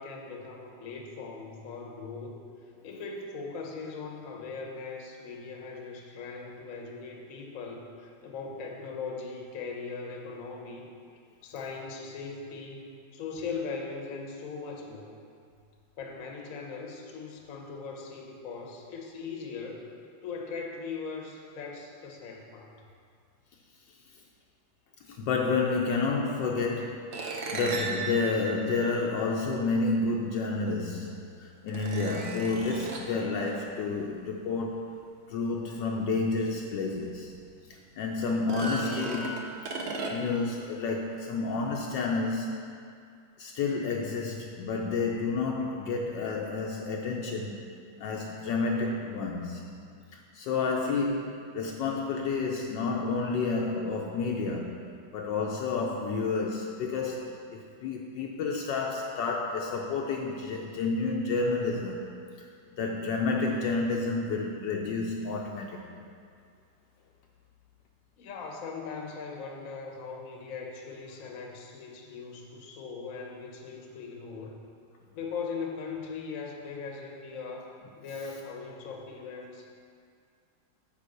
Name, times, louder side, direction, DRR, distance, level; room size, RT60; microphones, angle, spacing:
voice 1, 0.0-2.4 2.8-10.8 11.4-15.1 16.0-19.9 20.2-22.7 68.2-74.6 75.1-77.7 78.0-79.7, left 4 dB, 55° left, 1 dB, 1.1 m, -39 dB
voice 2, 25.1-34.9 35.3-37.4 38.0-39.5 40.1-42.8 43.4-47.7 48.0-49.7 50.3-54.7 55.1-62.1 62.8-65.8, left 3 dB, 75° left, 0 dB, 1.2 m, -30 dB
sound 1, 27.1-29.6 30.8-30.9 31.7-33.2 36.5-36.6 37.0-37.1 38.3-40.5, right 3 dB, 80° right, 0.5 m, -36 dB
9.0 x 3.7 x 6.4 m, 2.3 s
omnidirectional pair, 2.1 m